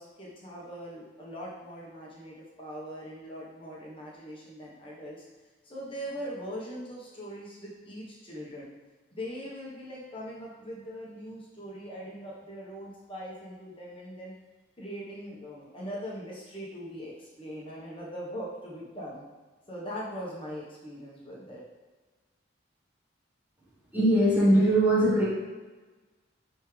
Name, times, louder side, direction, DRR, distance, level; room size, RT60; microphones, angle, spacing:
voice 1, 0.0-5.2 5.6-8.7 9.1-14.3 14.8-19.2 19.7-21.6, equal, 25° left, -5 dB, 1.3 m, -41 dB
voice 2, 23.9-25.3, right 1 dB, 10° right, -7 dB, 1.4 m, -21 dB
10.5 x 3.6 x 3.4 m, 1.3 s
head